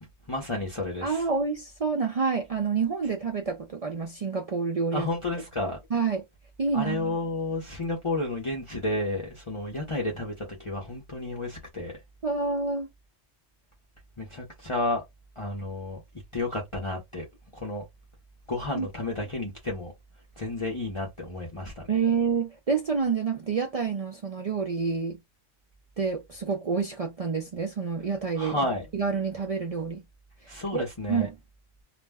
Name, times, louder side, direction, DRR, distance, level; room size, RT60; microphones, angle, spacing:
voice 1, 0.3-1.2 4.9-5.8 6.7-12.0 14.2-15.0 15.4-16.0 16.3-17.2 17.5-17.8 18.5-19.9 20.4-22.0 28.4-28.9 30.5-31.3, left 2 dB, 30° left, 0.7 m, -31 dB
voice 2, 1.0-5.1 5.9-6.2 6.6-7.2 12.2-12.9 18.7-18.9 21.9-25.2 26.0-28.6 28.9-30.0 30.7-31.3, right 5 dB, 60° right, 0.4 m, -28 dB
2.4 x 2.1 x 3.4 m
omnidirectional pair, 1.2 m